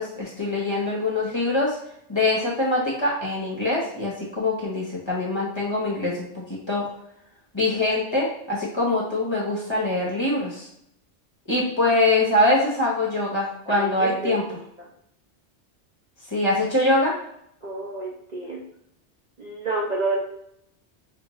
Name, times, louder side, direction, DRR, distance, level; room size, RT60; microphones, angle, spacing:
voice 1, 0.0-1.8 2.1-6.8 7.5-10.7 11.5-14.4 16.3-17.1, left 2 dB, 25° left, -5 dB, 1.1 m, -23 dB
voice 2, 13.7-14.4 17.6-18.6 19.4-20.2, right 2 dB, 40° right, -4 dB, 0.8 m, -29 dB
5.0 x 2.7 x 3.1 m, 0.73 s
omnidirectional pair, 1.2 m